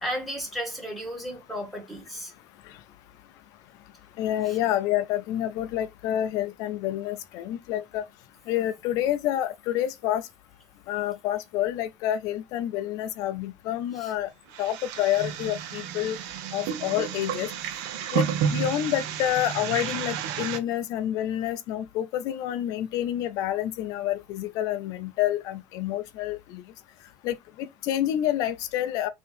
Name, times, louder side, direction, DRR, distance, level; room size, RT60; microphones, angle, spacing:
voice 1, 0.0-2.3 4.4-4.6 13.9-14.1, equal, ahead, 1.5 m, -34 dB
voice 2, 4.2-8.0 8.5-10.2 10.9-14.3 14.6-16.2 16.5-17.5 18.1-26.6 27.2-29.1, left 12 dB, 70° left, 0.4 m, -28 dB
sound 1, 14.5-20.6, right 8 dB, 85° right, 0.6 m, -31 dB
3.8 x 2.8 x 4.1 m
cardioid pair, 145°, 6 cm